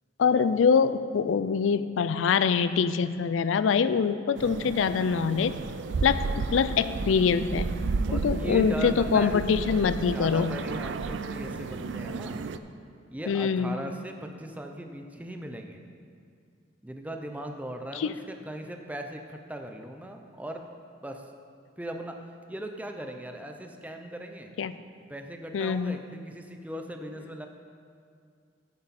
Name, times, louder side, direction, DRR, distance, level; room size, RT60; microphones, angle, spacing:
voice 1, 0.2-5.6 6.0-6.3 6.5-7.7 8.1-10.5 13.3-13.8 18.0-18.1 24.6-24.7 25.5-26.0, left 6 dB, 90° left, 13 dB, 0.4 m, -24 dB
sound 1, 4.4-12.6, right 3 dB, 70° right, 0.4 m, -32 dB
voice 2, 8.1-9.4 10.0-12.4 13.1-15.8 16.8-20.6 21.0-21.2 21.8-22.2 22.5-24.5 25.1-27.5, right 1 dB, 10° right, 4 dB, 0.7 m, -38 dB
9.8 x 9.8 x 4.2 m, 2.3 s
head